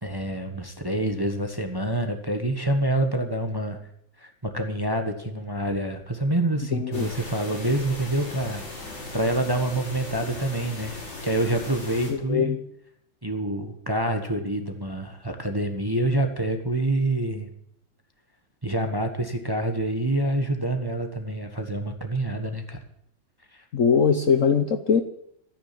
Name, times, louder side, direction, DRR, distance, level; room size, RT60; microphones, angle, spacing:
voice 1, 0.0-3.8 4.2-8.6 9.1-12.6 13.2-17.5 18.6-22.8 23.5-23.6, right 1 dB, 15° right, 6 dB, 1.2 m, -27 dB
voice 2, 6.7-7.0 12.1-12.6 23.7-25.0, left 6 dB, 50° left, 8 dB, 1.1 m, -21 dB
sound 1, 6.9-12.1, left 2 dB, 90° left, 4.7 m, -38 dB
13.5 x 10.0 x 8.5 m, 0.73 s
omnidirectional pair, 2.1 m